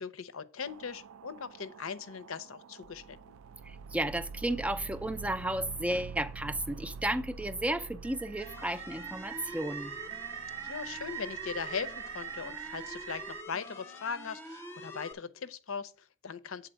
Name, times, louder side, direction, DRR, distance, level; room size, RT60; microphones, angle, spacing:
voice 1, 0.0-3.2 10.6-16.7, left 6 dB, 70° left, 0.6 m, -39 dB
sound 1, 0.6-13.4, right 8 dB, 75° right, 0.4 m, -44 dB
voice 2, 3.7-9.9, right 1 dB, 5° right, 0.4 m, -33 dB
sound 2, 8.4-15.1, left 1 dB, 10° left, 0.8 m, -46 dB
8.0 x 4.0 x 6.2 m
head